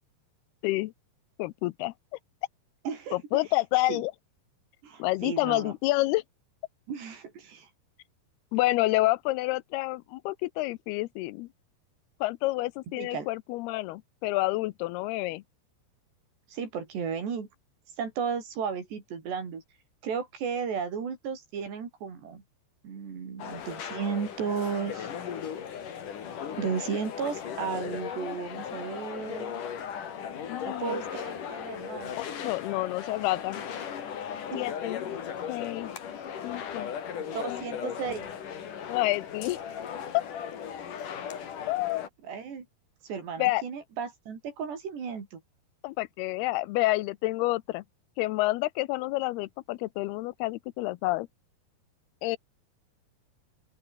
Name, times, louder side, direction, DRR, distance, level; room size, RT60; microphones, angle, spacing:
voice 1, 1.4-1.9 3.1-4.1 5.0-6.2 8.5-11.5 12.2-15.4 30.5-31.0 32.2-33.6 34.5-35.1 35.5-35.9 36.4-36.9 37.5-37.9 38.9-39.6 41.7-42.0 43.4-43.6 45.8-47.8 48.2-51.3 52.2-52.4, left 19 dB, 80° left, 2.6 m, -29 dB
voice 2, 2.9-3.4 3.9-4.0 4.8-5.7 6.9-7.7 13.0-13.3 16.5-17.5 18.0-19.6 20.0-22.4 22.8-25.1 26.6-29.5 30.7-32.1 34.5-34.7 37.2-38.3 42.2-42.7 43.0-45.4, right 6 dB, 90° right, 7.0 m, -34 dB
sound 1, 23.4-42.1, left 8 dB, 55° left, 3.9 m, -37 dB
open air
omnidirectional pair, 4.7 m